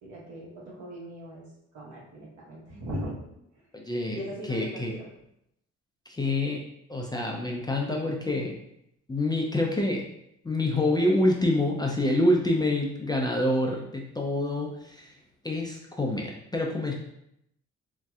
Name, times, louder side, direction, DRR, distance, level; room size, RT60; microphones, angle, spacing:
voice 1, 0.0-1.5 1.7-3.1 4.1-5.1, equal, 75° right, -4 dB, 1.1 m, -39 dB
voice 2, 3.7-4.2 4.5-4.9 6.1-8.6 9.1-10.0 10.4-15.2 15.4-16.9, left 1 dB, 15° left, -1 dB, 0.4 m, -27 dB
3.1 x 2.7 x 2.3 m, 0.78 s
cardioid pair, 90°, 30 cm